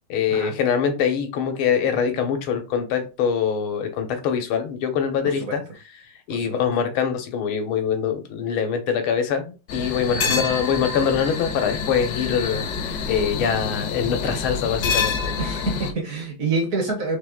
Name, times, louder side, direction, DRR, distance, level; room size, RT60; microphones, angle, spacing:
voice 1, 0.1-15.2, left 7 dB, 90° left, 1.8 m, -24 dB
voice 2, 6.3-6.6 10.1-10.4 15.4-17.2, right 3 dB, 55° right, 1.0 m, -27 dB
sound 1, 9.7-15.9, left 5 dB, 65° left, 1.1 m, -27 dB
4.5 x 3.1 x 3.5 m
omnidirectional pair, 2.3 m